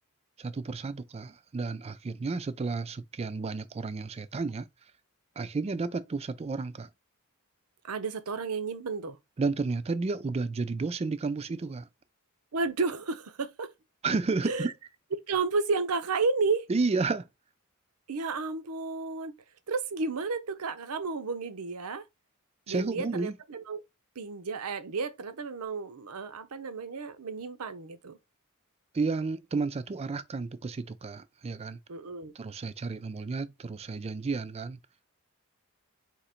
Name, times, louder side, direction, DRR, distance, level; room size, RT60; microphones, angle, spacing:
voice 1, 0.4-4.7 5.4-6.9 9.4-11.9 14.0-14.7 16.7-17.3 22.7-23.3 28.9-31.8 32.4-34.8, right 4 dB, 30° right, 0.3 m, -32 dB
voice 2, 7.8-9.2 12.5-13.7 14.4-14.7 15.3-16.7 18.1-19.3 19.7-22.1 22.7-23.8 24.2-28.2 31.9-32.3, right 4 dB, 80° right, 0.7 m, -32 dB
3.8 x 2.9 x 4.3 m
head